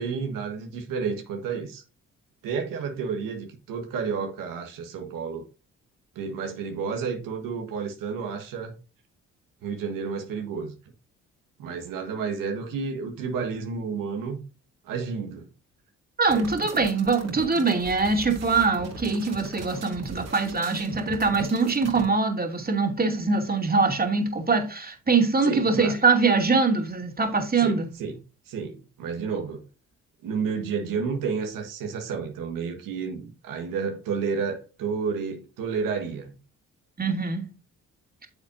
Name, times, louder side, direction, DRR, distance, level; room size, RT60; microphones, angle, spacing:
voice 1, 0.0-1.8 2.4-5.4 6.1-8.7 9.6-10.7 11.6-14.4 14.8-15.5 16.3-16.5 25.4-25.9 27.6-28.2 28.4-29.6 30.2-36.4, right 5 dB, 75° right, 1.6 m, -31 dB
voice 2, 16.2-27.9 37.0-37.5, right 4 dB, 25° right, 2.6 m, -23 dB
sound 1, 16.3-22.1, right 3 dB, 50° right, 2.6 m, -39 dB
9.5 x 7.0 x 2.6 m
supercardioid pair, 60°, 33 cm